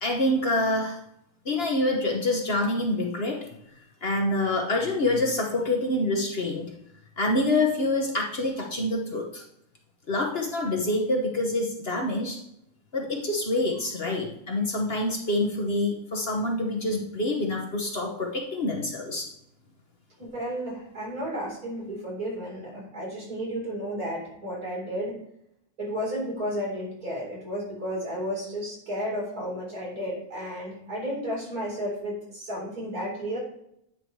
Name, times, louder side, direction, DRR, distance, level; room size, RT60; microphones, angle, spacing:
voice 1, 0.0-1.0 1.4-3.5 4.0-6.7 7.2-9.4 10.1-12.4 12.9-19.3, left 2 dB, 45° left, 1 dB, 1.3 m, -26 dB
voice 2, 20.2-25.2 25.8-33.4, equal, 75° right, -4 dB, 4.4 m, -32 dB
9.4 x 4.9 x 4.7 m, 0.75 s
omnidirectional pair, 1.6 m